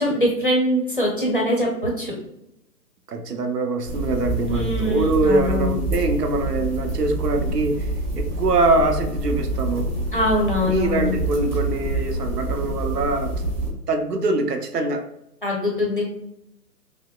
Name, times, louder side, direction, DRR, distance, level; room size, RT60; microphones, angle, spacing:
voice 1, 0.0-2.1 4.5-5.7 10.1-11.1 15.4-16.1, left 1 dB, 35° left, -2 dB, 0.6 m, -23 dB
voice 2, 3.1-7.9 8.2-10.0 10.6-13.4 13.7-15.1, right 3 dB, 75° right, 6 dB, 0.8 m, -23 dB
sound 1, 3.8-13.7, right 1 dB, 30° right, 1.0 m, -27 dB
6.1 x 2.0 x 2.2 m, 0.85 s
hypercardioid pair, 175°, 48 cm